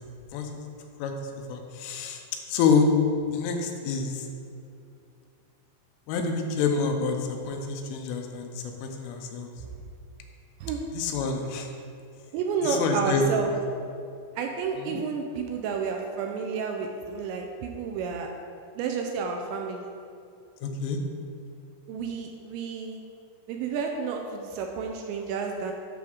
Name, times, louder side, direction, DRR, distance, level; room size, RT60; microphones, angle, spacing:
voice 1, 1.0-2.2 2.5-2.9 3.3-4.3 6.1-9.5 10.9-11.7 12.6-13.3 14.8-15.0 20.6-21.0, left 5 dB, 90° left, 3 dB, 3.4 m, -27 dB
voice 2, 12.3-13.5 14.4-18.3 18.8-19.9 21.9-23.0 23.5-25.7, right 5 dB, 80° right, 3 dB, 2.7 m, -30 dB
10.5 x 3.5 x 6.2 m, 2.5 s
omnidirectional pair, 5.5 m